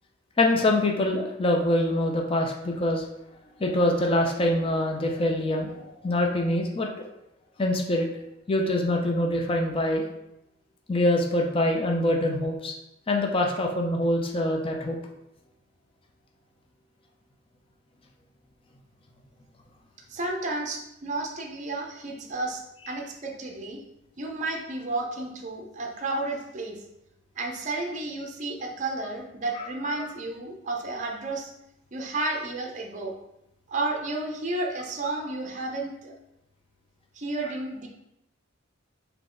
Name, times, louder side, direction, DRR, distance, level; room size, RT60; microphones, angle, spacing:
voice 1, 0.4-3.1 3.6-6.9 7.6-8.1 8.5-10.1 10.9-12.7 13.1-15.0, left 1 dB, 25° left, 1 dB, 0.5 m, -24 dB
voice 2, 20.1-23.8 24.2-26.8 27.4-31.5 31.9-33.1 33.7-36.1 37.1-37.9, right 2 dB, 35° right, 1 dB, 0.6 m, -32 dB
3.8 x 2.9 x 3.7 m, 0.86 s
head